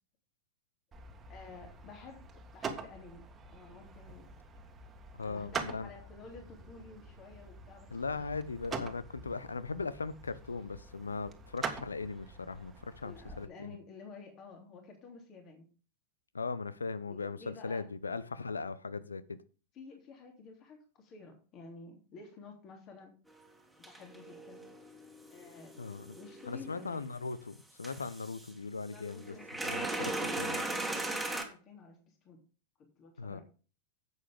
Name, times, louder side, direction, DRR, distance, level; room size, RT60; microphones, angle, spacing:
sound 1, 0.9-13.4, right 5 dB, 20° right, 1.7 m, -45 dB
voice 1, 1.3-2.2 2.5-4.3 5.2-8.3 13.0-15.7 17.1-17.9 19.7-23.1 23.8-24.7 25.3-25.8 26.1-27.0 28.8-32.4 33.0-33.4, left 4 dB, 35° left, 3.3 m, -52 dB
voice 2, 5.1-5.9 7.9-13.8 16.3-19.4 25.8-26.2 26.5-29.3 29.6-30.1 30.4-30.6 33.2-33.4, left 4 dB, 75° left, 0.8 m, -39 dB
sound 2, 23.3-23.4 23.8-27.2 27.8-28.5 29.0-31.4, right 2 dB, ahead, 2.3 m, -38 dB
11.0 x 8.3 x 3.6 m
figure-of-eight pair, 90°, 0 cm